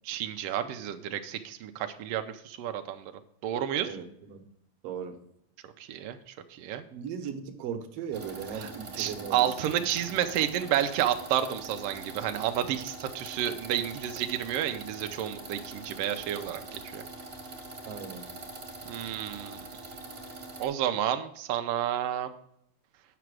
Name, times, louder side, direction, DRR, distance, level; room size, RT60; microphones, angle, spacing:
voice 1, 0.1-3.1 3.4-3.9 5.9-6.2 6.5-6.8 9.0-17.0 18.9-19.6 20.6-22.3, right 10 dB, 85° right, 7 dB, 1.3 m, -30 dB
voice 2, 3.9-4.4 4.8-5.2 6.9-9.9 17.8-18.3, right 7 dB, 65° right, 6 dB, 1.7 m, -38 dB
sound 1, 8.1-20.7, right 2 dB, 30° right, 1.1 m, -43 dB
8.9 x 6.0 x 4.6 m, 0.73 s
omnidirectional pair, 3.3 m